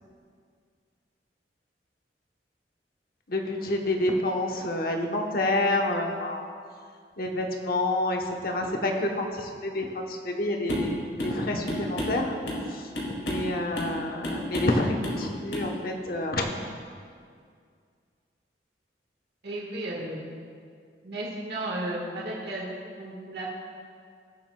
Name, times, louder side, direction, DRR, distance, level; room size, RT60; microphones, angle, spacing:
voice 1, 3.3-6.5 7.2-11.0 11.2-12.4 13.1-16.5, left 1 dB, 55° left, 2 dB, 1.0 m, -28 dB
sound 1, 10.7-10.9 11.2-11.4 11.7-12.7 13.0-13.5 13.8-14.0 14.2-14.8 15.0-15.2 15.5-15.7, left 1 dB, 80° left, 2.4 m, -31 dB
voice 2, 19.4-20.2 21.0-23.6, right 1 dB, 65° right, -4 dB, 1.6 m, -34 dB
18.5 x 7.3 x 2.3 m, 2.1 s
head